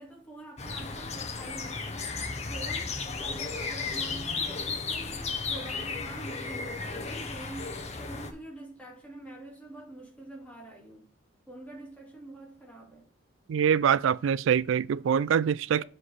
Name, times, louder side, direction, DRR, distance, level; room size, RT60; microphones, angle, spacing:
voice 1, 0.0-2.1 2.5-11.1 11.5-13.1 15.7-15.8, right 1 dB, 5° left, 2.0 m, -46 dB
sound 1, 0.6-8.3, left 4 dB, 35° left, 0.8 m, -34 dB
voice 2, 13.5-15.8, right 8 dB, 80° right, 0.3 m, -24 dB
7.3 x 3.3 x 5.7 m
head